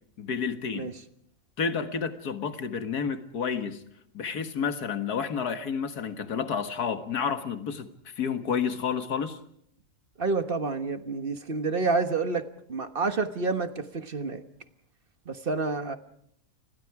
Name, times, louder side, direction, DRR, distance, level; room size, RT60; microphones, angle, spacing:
voice 1, 0.2-0.9 1.6-3.8 4.1-9.4, left 6 dB, 75° left, 2.1 m, -30 dB
voice 2, 10.2-14.4 15.2-16.0, right 3 dB, 40° right, 1.4 m, -29 dB
30.0 x 21.0 x 4.8 m
omnidirectional pair, 1.7 m